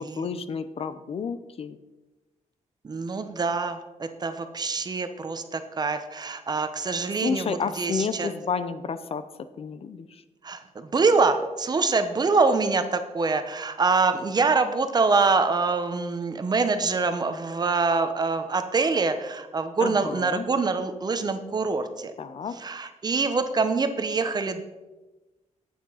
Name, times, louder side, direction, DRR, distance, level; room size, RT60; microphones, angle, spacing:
voice 1, 0.0-1.8 7.2-10.2 19.8-20.4 22.2-22.6, left 6 dB, 50° left, 12 dB, 0.6 m, -31 dB
voice 2, 2.8-8.3 10.4-22.1 22.5-24.6, right 4 dB, 35° right, 9 dB, 0.8 m, -25 dB
10.0 x 8.6 x 5.6 m, 1.1 s
wide cardioid pair, 170°, 12 cm